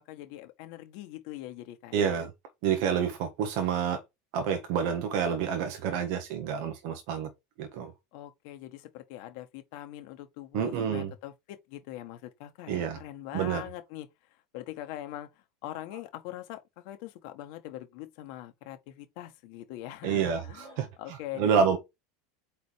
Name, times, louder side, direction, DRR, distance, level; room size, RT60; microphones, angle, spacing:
voice 1, 0.0-2.0 8.1-15.3 15.6-21.8, left 14 dB, 65° left, 1.6 m, -42 dB
voice 2, 1.9-2.3 2.6-4.0 4.3-7.3 7.6-7.9 10.5-11.1 12.7-13.0 13.3-13.6 20.0-21.8, right 7 dB, 65° right, 1.6 m, -28 dB
5.1 x 4.3 x 4.8 m
supercardioid pair, 120°, 0 cm